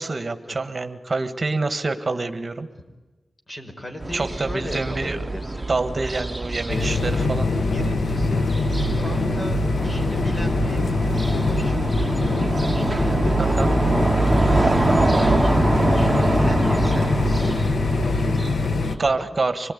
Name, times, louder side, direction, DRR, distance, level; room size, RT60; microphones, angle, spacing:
voice 1, 0.0-2.7 4.1-5.2 5.7-7.5 13.4-13.7 19.0-19.7, right 3 dB, 45° right, 9 dB, 1.7 m, -26 dB
voice 2, 3.5-5.7 6.6-7.0 7.7-10.9 11.4-17.5 18.0-19.3, left 1 dB, 35° left, 4 dB, 5.6 m, -37 dB
sound 1, 4.0-19.1, right 2 dB, 20° right, 1.7 m, -24 dB
sound 2, 6.7-19.0, left 3 dB, 85° left, 1.1 m, -23 dB
26.0 x 20.5 x 10.0 m, 1.2 s
wide cardioid pair, 70°, 0 cm